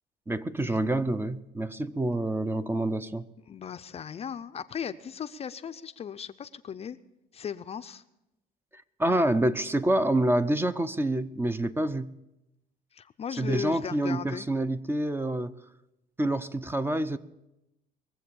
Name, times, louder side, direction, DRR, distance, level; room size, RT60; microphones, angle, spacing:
voice 1, 0.3-3.2 9.0-12.1 13.4-15.5 16.2-17.2, right 1 dB, 15° right, 13 dB, 0.6 m, -27 dB
voice 2, 3.5-7.0 7.3-8.0 12.9-14.5, left 8 dB, 35° left, 10 dB, 0.5 m, -37 dB
21.5 x 7.7 x 7.0 m, 0.93 s
cardioid pair, 110°, 17 cm